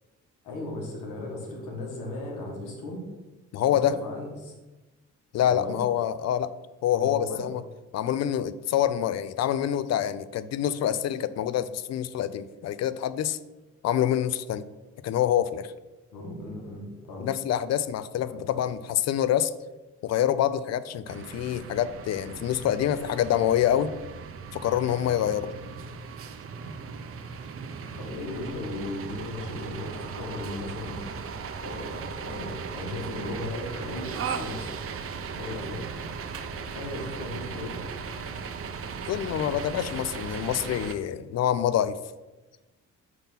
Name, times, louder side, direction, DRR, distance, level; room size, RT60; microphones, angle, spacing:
voice 1, 0.4-3.0 3.7-4.5 5.4-5.8 6.9-7.4 16.1-17.3 18.3-18.4 28.0-34.8 35.3-35.9 36.7-37.8, left 2 dB, 85° left, -1 dB, 1.9 m, -36 dB
voice 2, 3.5-4.0 5.3-6.5 6.8-7.6 7.9-13.4 13.8-14.6 15.0-15.7 17.2-19.5 20.0-23.9 24.5-25.5 39.1-42.0, left 10 dB, 60° left, 15 dB, 0.5 m, -26 dB
sound 1, 21.1-40.9, right 5 dB, 50° right, 0.6 m, -37 dB
5.8 x 3.6 x 5.7 m, 1.1 s
cardioid pair, 90°, 30 cm